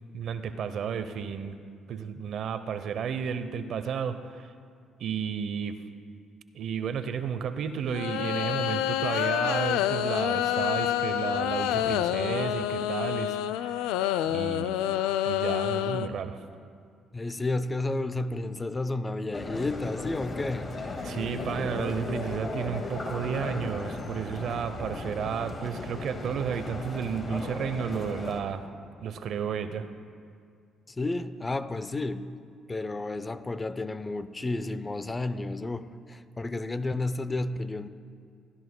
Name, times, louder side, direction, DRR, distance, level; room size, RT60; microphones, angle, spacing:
voice 1, 0.1-1.6 1.9-4.5 5.0-5.8 6.5-13.8 14.2-14.7 15.2-16.4 21.0-28.6 29.0-29.9, right 7 dB, 65° right, 11 dB, 0.6 m, -32 dB
sound 1, 7.9-16.1, left 11 dB, 90° left, 0.3 m, -28 dB
voice 2, 17.1-20.7 30.9-32.3 32.7-37.9, left 2 dB, 20° left, 13 dB, 0.6 m, -31 dB
sound 2, 19.3-28.4, left 2 dB, 40° left, 1.8 m, -36 dB
18.5 x 14.0 x 2.2 m, 2.3 s
supercardioid pair, 75°, 0 cm